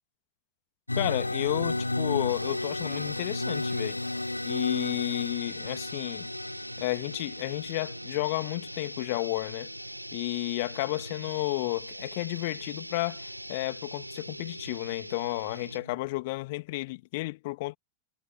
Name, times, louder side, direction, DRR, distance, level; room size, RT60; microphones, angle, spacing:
sound 1, 0.9-9.7, left 2 dB, 85° left, 7.1 m, -33 dB
voice 1, 1.0-4.0 4.4-6.3 6.8-9.7 10.1-17.8, left 21 dB, 50° left, 2.2 m, -32 dB
sound 2, 2.3-16.0, equal, 90° right, 5.0 m, -42 dB
figure-of-eight pair, 90°, 0 cm